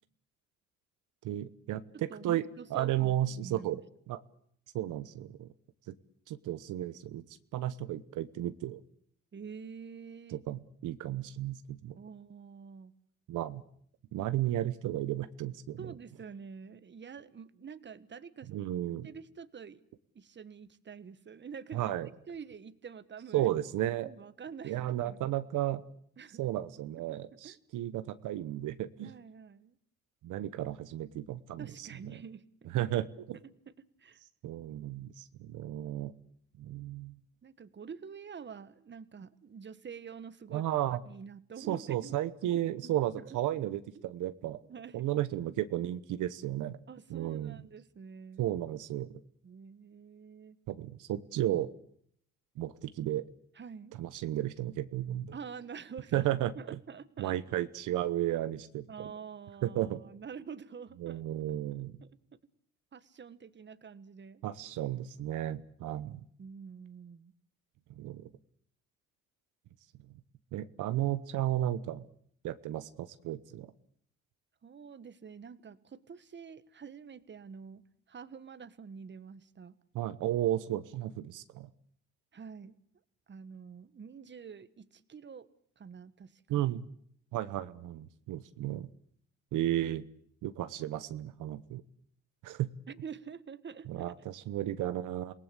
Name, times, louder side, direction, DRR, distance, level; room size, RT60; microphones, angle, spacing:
voice 1, 1.2-2.4 2.7-3.8 4.1-4.2 4.7-5.5 5.9-6.0 6.3-7.2 7.5-8.8 10.3-11.9 13.3-13.6 14.1-15.9 18.5-19.1 21.7-22.1 23.3-24.1 24.6-25.8 26.4-29.1 30.2-31.7 32.7-33.4 34.4-36.1 36.6-37.2 40.5-41.0 41.7-44.6 44.9-46.8 47.1-47.6 48.4-49.1 50.7-51.7 52.6-53.3 54.0-55.3 56.1-56.8 57.2-58.9 59.6-60.0 61.0-62.0 64.4-66.2 68.0-68.3 70.5-72.1 72.4-73.7 79.9-81.7 86.5-86.9 87.3-88.9 89.5-90.1 90.4-91.8 92.4-92.7 93.9-95.3, right 13 dB, 85° right, 13 dB, 1.1 m, -33 dB
voice 2, 1.7-3.8 9.3-10.4 12.0-12.9 15.8-18.5 19.0-19.8 20.1-21.9 22.3-23.5 24.0-25.2 26.2-26.5 27.4-27.6 29.0-29.7 31.6-32.7 33.4-34.2 37.4-40.6 41.0-42.2 42.5-43.4 44.7-45.1 46.9-48.5 49.4-50.6 53.5-54.0 55.3-57.4 58.9-61.2 61.7-62.2 62.9-64.4 66.4-67.3 74.6-79.8 82.3-82.8 83.3-85.5 85.8-86.6 92.9-94.1, right 6 dB, 35° right, 15 dB, 1.5 m, -47 dB
28.0 x 18.5 x 8.2 m, 0.65 s
cardioid pair, 90°, 30 cm